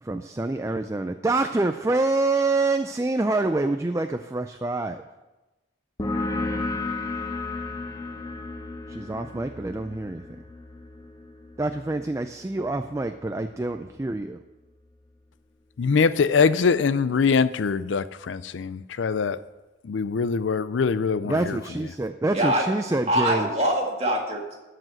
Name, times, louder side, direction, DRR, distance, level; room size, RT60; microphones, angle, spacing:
voice 1, 0.0-5.0 8.9-10.2 11.6-14.4 21.2-23.5, right 2 dB, 15° right, 7 dB, 0.3 m, -26 dB
sound 1, 6.0-13.3, left 2 dB, 20° left, 0.7 m, -33 dB
voice 2, 15.8-19.4 19.9-21.6, left 5 dB, 85° left, 14 dB, 0.5 m, -23 dB
voice 3, 22.3-22.6 23.1-24.6, equal, 35° right, 0 dB, 1.9 m, -23 dB
13.5 x 5.0 x 7.7 m, 1.1 s
head